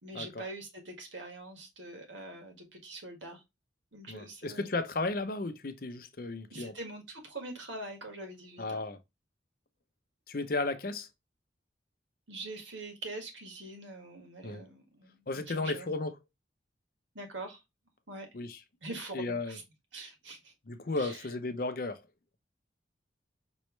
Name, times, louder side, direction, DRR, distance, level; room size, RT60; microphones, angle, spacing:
voice 1, 0.0-3.4 3.9-4.7 6.5-8.8 12.3-15.9 17.2-17.6 18.1-18.3 18.8-19.6 19.9-20.5 21.0-21.3, right 2 dB, 80° right, 1.8 m, -44 dB
voice 2, 4.1-6.7 8.6-9.0 10.3-11.1 14.4-14.6 15.3-16.1 18.3-18.6 19.1-19.6 20.7-22.0, left 3 dB, 50° left, 0.6 m, -34 dB
5.4 x 3.2 x 3.1 m
head